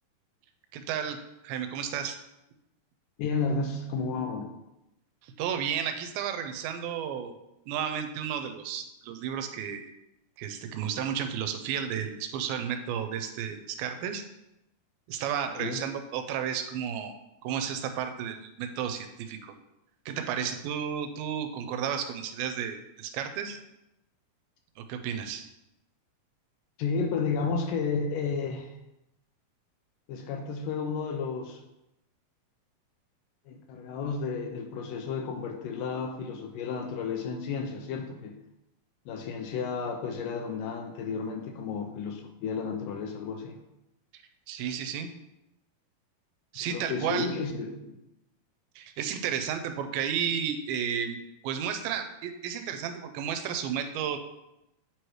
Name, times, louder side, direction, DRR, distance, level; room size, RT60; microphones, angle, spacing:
voice 1, 0.7-1.2 1.4-2.2 5.2-7.3 7.7-9.8 10.4-14.2 15.1-17.1 17.4-19.5 20.1-23.6 24.8-25.5 44.5-45.1 46.5-47.3 48.8-51.2 51.4-54.2, right 8 dB, 85° right, 7 dB, 2.4 m, -32 dB
voice 2, 3.2-4.6 15.6-15.8 26.8-28.7 30.1-31.6 33.5-38.4 39.1-43.6 46.6-48.0, left 5 dB, 80° left, 4 dB, 2.0 m, -32 dB
8.8 x 3.1 x 4.6 m, 0.90 s
omnidirectional pair, 4.3 m